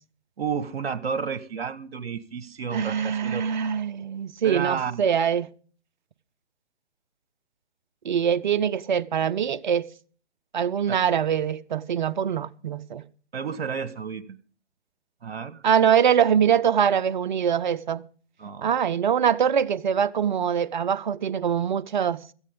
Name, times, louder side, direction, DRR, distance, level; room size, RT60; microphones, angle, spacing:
voice 1, 0.4-3.4 4.4-5.0 10.9-11.0 13.3-14.4 15.2-15.6 18.4-18.7, right 6 dB, 60° right, 1.3 m, -31 dB
voice 2, 2.7-5.5 8.0-9.9 10.5-13.0 15.6-18.0 18.6-22.2, right 8 dB, 45° right, 0.6 m, -23 dB
17.0 x 14.5 x 3.5 m
hypercardioid pair, 145°, 34 cm